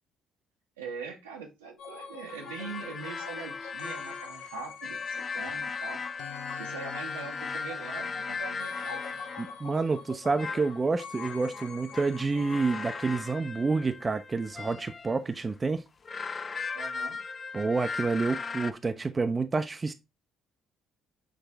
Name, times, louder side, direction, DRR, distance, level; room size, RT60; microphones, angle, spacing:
voice 1, 0.8-6.3 6.6-9.2 16.7-17.2, right 5 dB, 80° right, 0.9 m, -42 dB
sound 1, 1.8-13.3, left 6 dB, 65° left, 0.7 m, -45 dB
sound 2, 2.3-9.6 10.4-10.8 11.2-15.3 15.9-18.7, left 5 dB, 35° left, 0.3 m, -37 dB
voice 2, 9.4-15.8 17.5-19.9, right 4 dB, 30° right, 0.5 m, -29 dB
6.0 x 2.6 x 3.3 m
figure-of-eight pair, 50°, 0 cm